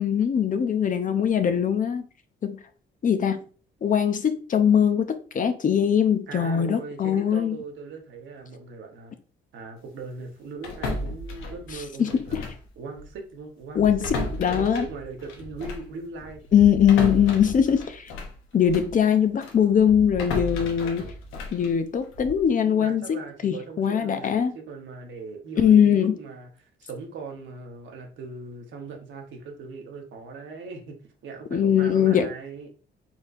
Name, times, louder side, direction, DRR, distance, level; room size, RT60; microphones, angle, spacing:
voice 1, 0.0-2.0 2.4-2.6 3.0-3.4 3.8-7.6 12.0-12.5 13.7-14.1 14.4-14.9 16.5-18.1 18.5-21.1 21.5-24.5 25.6-26.1 31.5-32.3, left 8 dB, 40° left, 0.6 m, -21 dB
voice 2, 6.3-9.1 9.5-16.4 22.6-32.7, right 4 dB, 70° right, 1.1 m, -40 dB
sound 1, 10.6-12.7 12.9-13.1 13.7-19.0 19.4-22.5, left 2 dB, 90° left, 0.9 m, -34 dB
4.3 x 3.7 x 2.6 m
cardioid pair, 90°, 20 cm